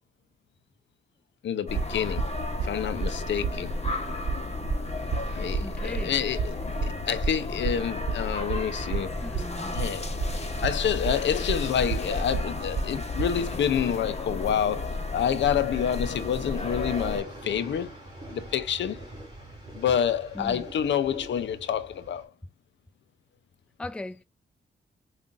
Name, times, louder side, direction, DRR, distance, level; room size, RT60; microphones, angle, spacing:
voice 1, 1.4-2.2 2.6-3.7 5.3-9.1 9.7-10.1 10.6-17.9 18.3-19.0 19.7-22.3, left 9 dB, 70° left, 0.5 m, -28 dB
sound 1, 1.7-17.2, left 2 dB, 35° left, 1.0 m, -33 dB
sound 2, 1.7-13.4, right 5 dB, 55° right, 0.8 m, -31 dB
voice 2, 5.6-6.2 9.2-9.8 20.3-20.7 23.8-24.2, left 2 dB, 5° left, 0.4 m, -38 dB
sound 3, 14.3-22.3, right 1 dB, 20° right, 2.6 m, -46 dB
5.1 x 2.5 x 2.4 m
supercardioid pair, 50°, 19 cm